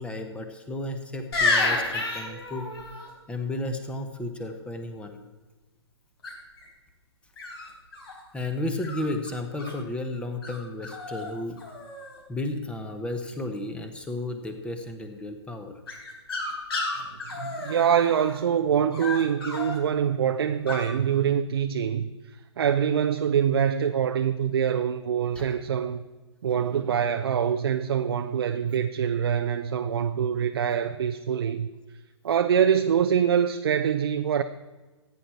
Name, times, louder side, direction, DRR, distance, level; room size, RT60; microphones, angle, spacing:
voice 1, 0.0-2.7 3.3-5.2 8.3-11.6 12.3-15.7 25.3-25.5, left 2 dB, 5° left, 1.1 m, -33 dB
sound 1, 1.3-3.1 6.2-6.6 7.4-8.2 8.8-9.7 10.4-10.6 10.8-11.3 11.6-12.2 15.9-18.4 18.9-19.8 20.7-20.9, left 3 dB, 60° left, 4.0 m, -30 dB
voice 2, 17.4-22.1 22.6-26.0 26.4-31.7 32.2-34.4, right 8 dB, 60° right, 0.6 m, -24 dB
15.5 x 9.1 x 4.4 m
figure-of-eight pair, 125°, 15 cm